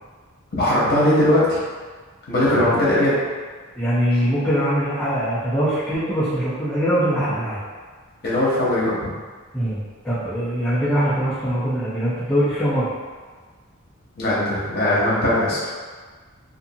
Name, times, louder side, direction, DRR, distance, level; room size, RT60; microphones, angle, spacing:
voice 1, 0.6-1.6 2.3-3.2 8.2-8.9 14.2-15.6, left 1 dB, 50° left, -8 dB, 0.9 m, -19 dB
voice 2, 3.8-7.6 9.5-12.9, equal, 5° left, -14 dB, 0.6 m, -22 dB
2.6 x 2.5 x 2.6 m, 1.5 s
head